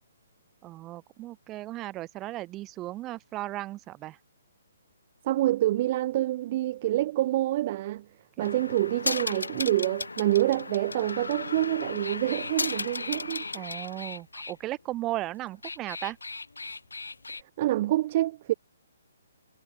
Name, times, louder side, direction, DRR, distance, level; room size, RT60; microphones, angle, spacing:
voice 1, 0.6-4.2 8.4-8.5 13.5-16.2, right 16 dB, 20° right, 7.9 m, -36 dB
voice 2, 5.2-8.1 8.4-13.7 17.6-18.5, right 15 dB, 35° right, 2.0 m, -27 dB
sound 1, 8.4-14.5 15.4-17.4, left 3 dB, 70° left, 1.4 m, -35 dB
figure-of-eight pair, 130°, 0 cm